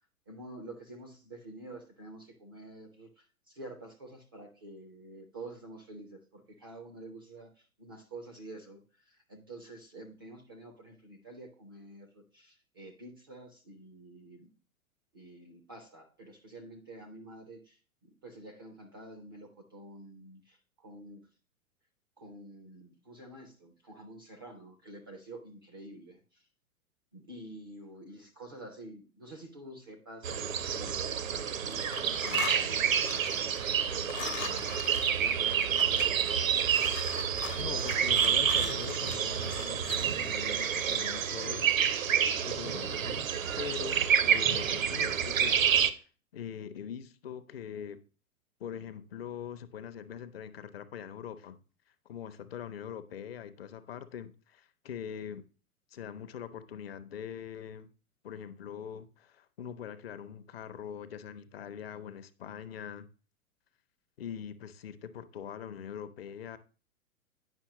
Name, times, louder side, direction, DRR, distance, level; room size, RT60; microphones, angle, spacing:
voice 1, 0.3-14.5 15.1-21.3 22.2-26.5 27.1-31.9 32.2-34.7 35.0-36.4, right 1 dB, 20° right, 0.3 m, -48 dB
sound 1, 30.2-45.9, right 8 dB, 65° right, 0.7 m, -29 dB
sound 2, 30.7-31.4 31.7-40.2, left 8 dB, 60° left, 0.9 m, -41 dB
voice 2, 37.5-41.8 42.4-43.3 43.6-46.0 46.3-48.0 48.6-51.6 52.1-55.4 55.9-57.9 58.2-63.1 64.2-66.6, left 8 dB, 45° left, 0.6 m, -42 dB
9.1 x 5.6 x 2.9 m
figure-of-eight pair, 105°, 43 cm